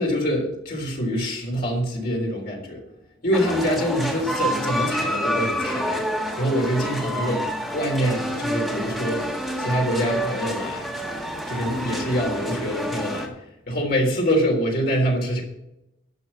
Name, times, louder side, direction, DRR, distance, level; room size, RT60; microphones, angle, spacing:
voice 1, 0.0-2.8 3.2-6.0 6.4-7.4 7.7-9.3 9.6-10.9 11.5-13.3 13.7-15.4, equal, 50° left, 0 dB, 3.6 m, -25 dB
sound 1, 3.3-13.3, equal, ahead, 1.8 m, -28 dB
12.0 x 6.4 x 7.2 m, 0.86 s
head